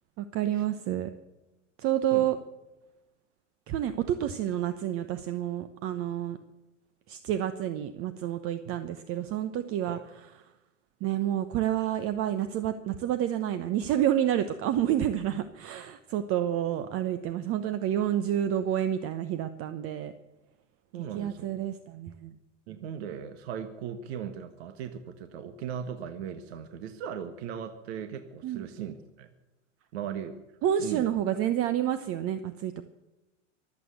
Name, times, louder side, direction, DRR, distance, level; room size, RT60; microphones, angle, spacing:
voice 1, 0.2-1.1 1.8-2.4 3.7-6.4 7.1-10.0 11.0-20.1 21.1-22.3 28.4-28.6 30.6-32.8, right 11 dB, 35° right, 11 dB, 1.0 m, -29 dB
voice 2, 20.9-21.6 22.7-29.3 29.9-30.4 30.8-31.1, right 8 dB, 60° right, 9 dB, 1.6 m, -38 dB
24.0 x 8.6 x 6.7 m, 1.0 s
hypercardioid pair, 100°, 37 cm